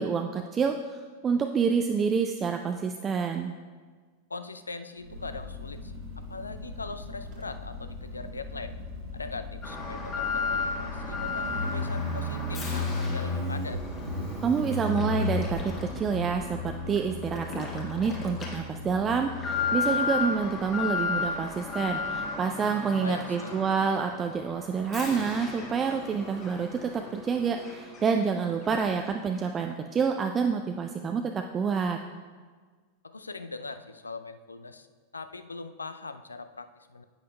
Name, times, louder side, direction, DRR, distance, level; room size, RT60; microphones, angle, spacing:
voice 1, 0.0-3.5 14.4-32.0, right 6 dB, 25° right, 5 dB, 0.4 m, -28 dB
voice 2, 4.3-6.0 6.3-8.8 9.1-13.8 22.6-23.6 33.0-34.9 35.1-37.0, left 3 dB, 80° left, 10 dB, 0.4 m, -41 dB
Motorcycle, 5.0-22.2, left 2 dB, 40° right, 1.3 m, -36 dB
Alarm, 9.6-28.3 28.6-28.7 29.3-29.4, left 5 dB, 30° left, 1.6 m, -35 dB
10.5 x 8.4 x 2.2 m, 1.5 s
figure-of-eight pair, 90°, 0 cm